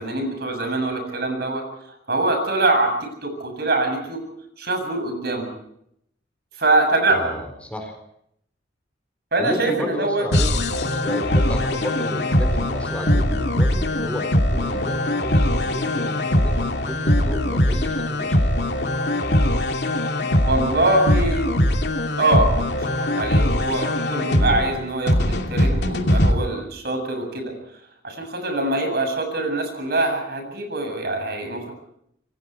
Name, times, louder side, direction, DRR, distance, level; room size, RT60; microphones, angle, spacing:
voice 1, 0.0-1.6 2.1-2.9 3.2-4.2 4.6-5.5 6.6-7.3 9.3-10.2 20.4-21.5 22.2-22.5 22.8-27.5 28.0-31.7, right 2 dB, 55° right, 5 dB, 7.8 m, -23 dB
voice 2, 7.1-8.0 9.4-10.5 11.0-18.6 24.4-24.7, equal, 5° left, 4 dB, 4.3 m, -32 dB
sound 1, 10.3-26.3, left 1 dB, 60° left, 2.7 m, -21 dB
27.5 x 23.5 x 4.7 m, 0.73 s
head